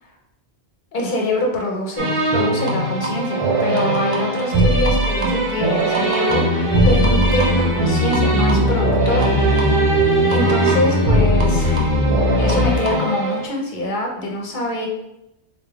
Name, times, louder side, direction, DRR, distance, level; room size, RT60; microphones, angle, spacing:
voice 1, 0.9-9.8 10.3-12.0 12.4-14.9, left 2 dB, 50° left, 0 dB, 0.8 m, -24 dB
sound 1, 2.0-13.4, right 2 dB, 50° right, 0.4 m, -20 dB
sound 2, 6.3-12.7, left 2 dB, 20° left, 0.6 m, -20 dB
3.8 x 3.2 x 2.3 m, 0.85 s
omnidirectional pair, 1.2 m